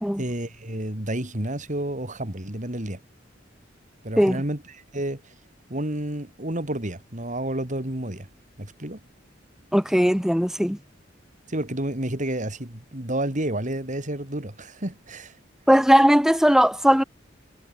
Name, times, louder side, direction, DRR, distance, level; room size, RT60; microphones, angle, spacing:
voice 1, 0.2-3.0 4.0-5.3 5.7-8.3 8.6-9.0 11.5-15.4, right 1 dB, 40° right, 4.0 m, -30 dB
voice 2, 9.7-10.8 15.7-17.0, equal, 5° right, 1.9 m, -18 dB
head